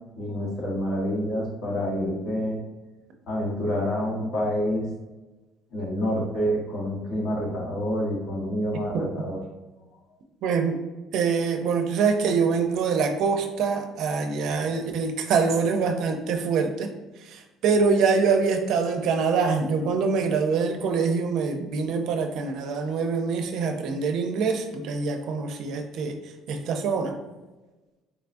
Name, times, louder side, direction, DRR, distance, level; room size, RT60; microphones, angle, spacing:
voice 1, 0.2-2.6 3.3-4.9 5.7-9.4, equal, 65° left, -4 dB, 1.2 m, -27 dB
voice 2, 10.4-10.8 11.1-16.9 17.2-27.1, right 5 dB, 65° right, 5 dB, 0.4 m, -25 dB
3.8 x 2.2 x 2.5 m, 1.1 s
cardioid pair, 130°, 0 cm